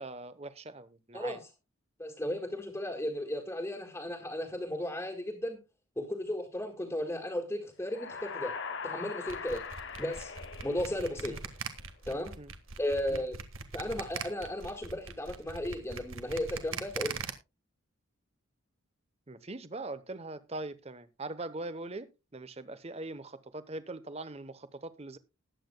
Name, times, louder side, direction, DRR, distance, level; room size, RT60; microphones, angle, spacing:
voice 1, 0.0-1.4 11.3-11.4 12.4-12.5 13.1-13.3 19.3-25.2, right 2 dB, 30° right, 0.9 m, -42 dB
voice 2, 1.1-1.5 2.0-5.6 6.0-8.5 8.8-9.7 10.0-10.3 10.6-11.4 12.1-12.3 12.8-13.4 13.7-17.2, left 1 dB, 10° left, 1.8 m, -35 dB
sound 1, 7.8-11.7, left 5 dB, 55° left, 1.1 m, -41 dB
sound 2, 9.3-17.3, right 5 dB, 70° right, 1.5 m, -40 dB
20.0 x 8.6 x 2.2 m
head